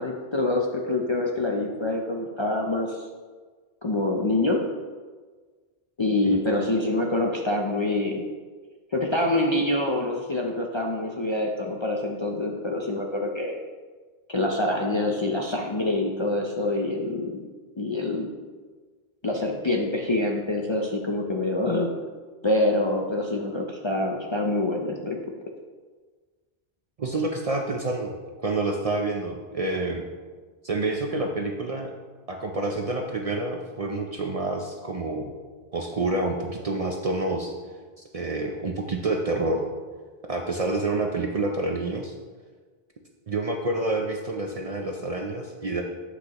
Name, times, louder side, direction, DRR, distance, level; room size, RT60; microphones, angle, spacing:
voice 1, 0.0-3.1 3.8-4.6 6.0-8.2 8.9-13.6 14.3-17.4 17.8-18.3 19.2-21.9 22.4-25.2, left 2 dB, 40° left, 0 dB, 0.5 m, -26 dB
voice 2, 27.0-28.1 28.4-30.0 30.6-31.9 32.3-35.3 35.7-37.5 38.0-39.6 40.3-42.1 43.3-45.8, right 2 dB, 45° right, 2 dB, 0.5 m, -28 dB
7.8 x 6.0 x 2.9 m, 1.4 s
omnidirectional pair, 1.0 m